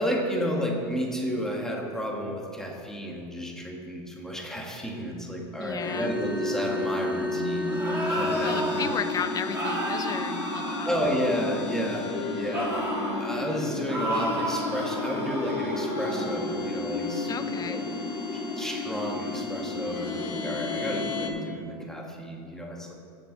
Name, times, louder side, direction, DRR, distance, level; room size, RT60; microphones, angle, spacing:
voice 1, 0.0-8.9 10.9-12.8 13.2-17.9 18.3-22.9, equal, 5° left, -1 dB, 1.8 m, -32 dB
voice 2, 5.6-6.1 8.4-10.9 17.3-17.8, left 7 dB, 25° left, 11 dB, 0.6 m, -34 dB
sound 1, 5.8-21.3, left 2 dB, 55° left, 2.8 m, -31 dB
sound 2, 7.6-9.0 9.5-11.8 12.5-13.2 13.9-16.4, right 1 dB, 15° right, 3.1 m, -32 dB
16.0 x 7.1 x 3.9 m, 2.3 s
hypercardioid pair, 95°, 14 cm